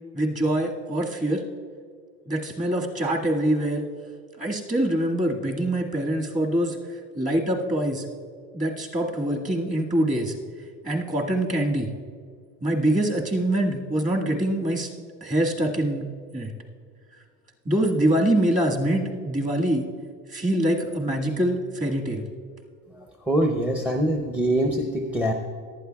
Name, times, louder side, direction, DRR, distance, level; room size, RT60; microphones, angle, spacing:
voice 1, 0.1-1.4 2.3-3.9 4.4-6.8 7.2-8.1 8.5-10.4 10.8-11.9 12.6-14.9 15.2-16.5 17.7-19.9 20.3-22.2, right 1 dB, 20° right, 0 dB, 1.7 m, -24 dB
voice 2, 23.3-25.3, right 1 dB, 5° right, 4 dB, 0.6 m, -23 dB
18.0 x 12.0 x 2.3 m, 2.1 s
supercardioid pair, 120°, 36 cm